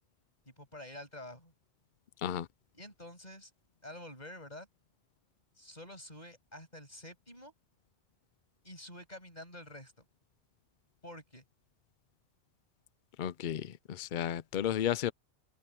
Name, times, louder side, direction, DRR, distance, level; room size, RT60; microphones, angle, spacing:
voice 1, 0.5-1.5 2.7-3.5 3.8-4.7 5.6-7.5 8.6-10.0 11.0-11.4, left 1 dB, 40° left, 7.2 m, -48 dB
voice 2, 13.2-15.1, left 10 dB, 55° left, 0.7 m, -33 dB
omnidirectional pair, 1.1 m